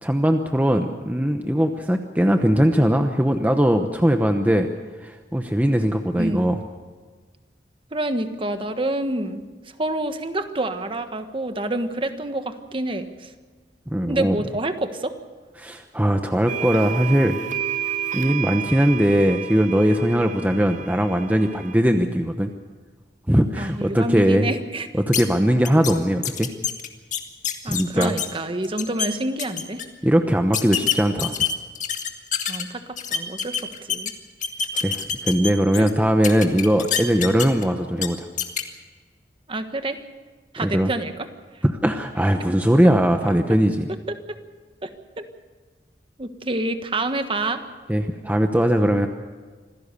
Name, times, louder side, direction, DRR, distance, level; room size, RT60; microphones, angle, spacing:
voice 1, 0.0-4.7 5.0-6.6 13.9-14.4 15.6-17.4 18.1-22.5 23.3-24.5 24.9-26.5 27.6-28.1 30.0-31.4 34.8-38.3 40.6-40.9 41.6-43.9 47.9-49.1, equal, 10° right, 5 dB, 0.9 m, -20 dB
voice 2, 7.9-9.4 9.8-13.3 14.1-15.1 23.6-24.9 27.6-29.8 32.5-32.8 33.1-34.1 34.7-34.8 35.7-35.9 39.5-40.0 40.5-41.1 42.5-42.6 44.3-44.4 44.8-44.9 45.2-45.3 46.2-47.6, right 2 dB, 30° right, 8 dB, 1.4 m, -27 dB
sound 1, 16.5-21.7, right 9 dB, 45° right, 0.7 m, -31 dB
sound 2, 25.1-25.2 25.6-25.9 26.2-28.3 28.6-29.1 29.4-29.8 30.5-32.6 33.0-34.1 34.4-35.9 36.2-37.6 38.0-38.1 38.4-38.6, left 8 dB, 45° left, 1.8 m, -25 dB
26.0 x 16.5 x 6.9 m, 1.4 s
head